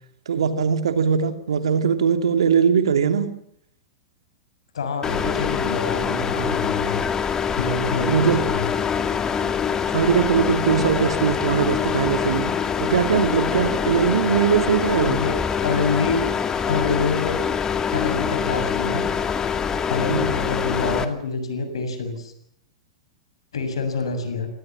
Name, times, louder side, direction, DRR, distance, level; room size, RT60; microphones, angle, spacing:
voice 1, 0.3-3.3 8.1-8.4 9.9-15.2 19.7-19.8 20.1-20.3, right 7 dB, 75° right, 8 dB, 2.8 m, -21 dB
voice 2, 4.7-7.0 7.6-8.7 15.1-16.2 16.7-17.4 17.9-19.0 19.9-22.3 23.5-24.5, left 4 dB, 80° left, 7 dB, 7.1 m, -26 dB
sound 1, 5.0-21.1, left 7 dB, 20° left, 2.3 m, -24 dB
26.5 x 19.5 x 7.5 m, 0.71 s
hypercardioid pair, 105°, 3 cm